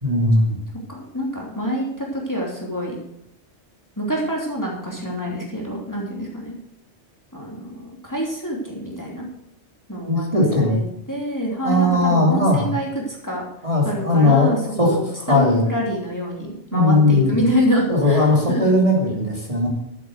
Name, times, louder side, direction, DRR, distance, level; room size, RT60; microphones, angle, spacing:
voice 1, 0.0-0.6 10.1-10.8 11.6-12.7 13.6-15.0 15.3-15.6 16.7-17.4 17.9-19.7, left 2 dB, 30° right, -2 dB, 2.9 m, -18 dB
voice 2, 0.9-3.0 4.0-6.5 7.3-9.3 9.9-13.4 13.8-18.8, equal, 15° left, -2 dB, 2.8 m, -26 dB
12.0 x 8.3 x 6.5 m, 0.78 s
omnidirectional pair, 1.2 m